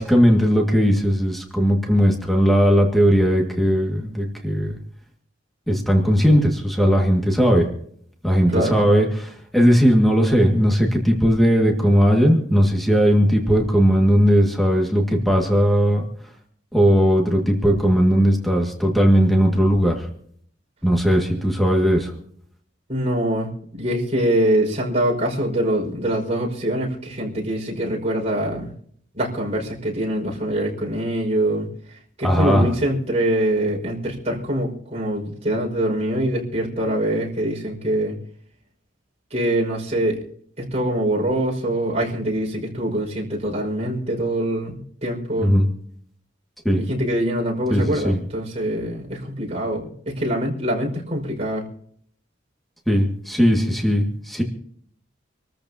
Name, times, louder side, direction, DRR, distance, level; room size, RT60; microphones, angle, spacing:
voice 1, 0.0-4.8 5.7-7.7 8.2-16.0 16.7-20.1 20.8-22.1 32.2-32.7 45.4-45.7 46.7-46.8 47.7-48.2 52.9-54.4, equal, ahead, 0 dB, 2.0 m, -18 dB
voice 2, 8.5-8.8 22.9-28.7 29.2-38.1 39.3-40.2 40.6-45.5 46.7-51.6, right 1 dB, 35° right, -1 dB, 5.5 m, -24 dB
27.0 x 14.0 x 2.9 m, 0.62 s
head